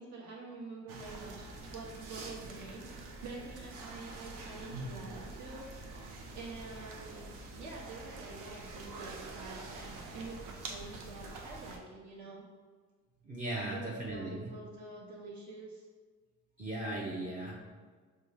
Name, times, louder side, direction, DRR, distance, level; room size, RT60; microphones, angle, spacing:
voice 1, 0.0-12.5 13.7-15.9, right 3 dB, 65° right, -4 dB, 1.1 m, -47 dB
sound 1, 0.9-11.8, right 2 dB, 80° right, 0.7 m, -46 dB
voice 2, 13.3-14.5 16.6-17.5, right 1 dB, 25° right, -5 dB, 0.6 m, -37 dB
6.0 x 2.2 x 3.4 m, 1.5 s
cardioid pair, 150°, 31 cm